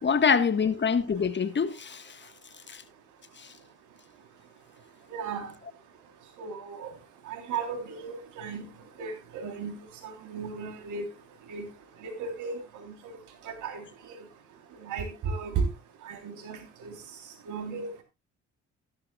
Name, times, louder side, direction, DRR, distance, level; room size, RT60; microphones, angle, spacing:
voice 1, 0.0-2.2 2.7-2.8, left 6 dB, 40° left, 1.5 m, -25 dB
voice 2, 5.1-5.5 6.4-6.9 7.3-8.7 9.0-11.1 11.5-11.7 12.0-13.2 13.4-14.2 14.8-15.7 16.0-17.0 17.5-18.0, right 5 dB, 85° right, 3.5 m, -35 dB
14.5 x 12.5 x 2.3 m
cardioid pair, 90°, 30 cm